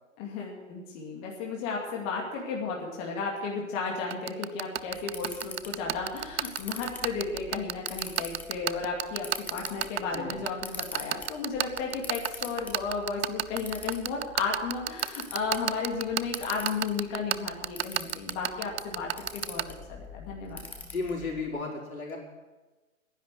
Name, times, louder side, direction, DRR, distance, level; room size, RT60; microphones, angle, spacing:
voice 1, 0.2-19.6 19.9-20.6, left 4 dB, 25° left, -1 dB, 2.5 m, -34 dB
sound 1, 4.1-19.6, right 11 dB, 50° right, 0.5 m, -28 dB
Camera, 4.8-21.5, left 4 dB, 5° left, 0.6 m, -45 dB
voice 2, 20.9-22.2, left 3 dB, 85° left, -2 dB, 4.5 m, -34 dB
11.0 x 10.5 x 9.2 m, 1.2 s
hypercardioid pair, 140°, 41 cm